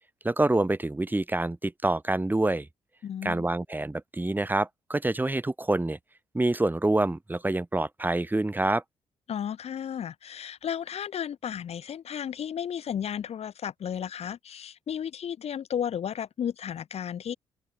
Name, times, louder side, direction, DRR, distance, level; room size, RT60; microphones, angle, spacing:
voice 1, 0.2-2.7 3.2-6.0 6.3-8.8, right 2 dB, 15° right, 2.8 m, -26 dB
voice 2, 3.0-3.5 9.3-17.4, left 9 dB, 60° left, 1.5 m, -33 dB
supercardioid pair, 60°, 12 cm